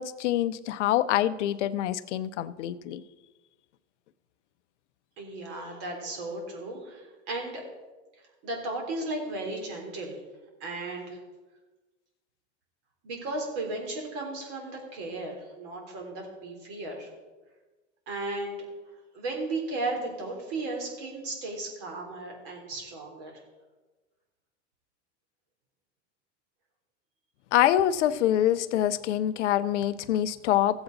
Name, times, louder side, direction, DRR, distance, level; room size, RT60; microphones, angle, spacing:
voice 1, 0.0-3.0 27.5-30.8, left 12 dB, 85° left, 14 dB, 0.7 m, -25 dB
voice 2, 5.2-7.6 8.4-10.2 10.6-11.2 13.0-17.1 18.1-18.7 19.1-23.4, right 2 dB, 65° right, 1 dB, 3.5 m, -35 dB
14.5 x 8.1 x 4.0 m, 1.2 s
supercardioid pair, 105°, 35 cm